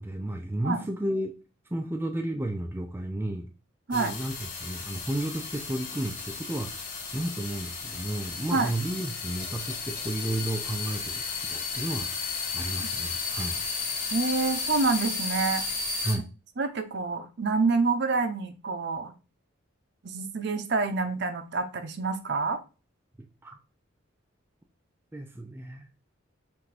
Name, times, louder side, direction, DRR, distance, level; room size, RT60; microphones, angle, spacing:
voice 1, 0.0-1.4 1.7-3.5 3.9-12.1 12.5-13.6 16.0-16.3 23.2-23.6 25.1-25.9, right 1 dB, 10° right, 5 dB, 0.3 m, -33 dB
sound 1, 3.9-16.1, left 4 dB, 40° left, 1.9 m, -34 dB
voice 2, 14.1-15.7 16.6-19.1 20.0-22.6, right 4 dB, 55° right, 8 dB, 0.6 m, -27 dB
5.8 x 2.6 x 3.3 m, 0.33 s
head